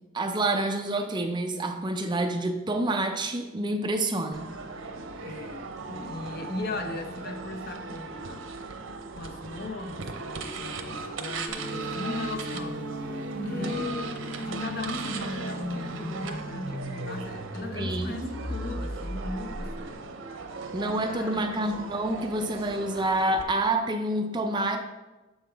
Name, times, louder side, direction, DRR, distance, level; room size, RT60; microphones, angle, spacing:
voice 1, 0.1-4.5 13.3-13.8 17.7-18.3 20.7-24.8, right 2 dB, 25° right, 0.5 m, -28 dB
sound 1, 4.3-23.4, right 4 dB, 85° right, 0.7 m, -38 dB
voice 2, 5.2-8.5 9.2-20.1 20.8-21.6, left 2 dB, 55° left, 0.8 m, -38 dB
sound 2, 9.9-19.9, left 1 dB, 85° left, 1.3 m, -38 dB
sound 3, 11.5-16.5, right 2 dB, 10° right, 1.1 m, -39 dB
7.5 x 5.6 x 3.4 m
head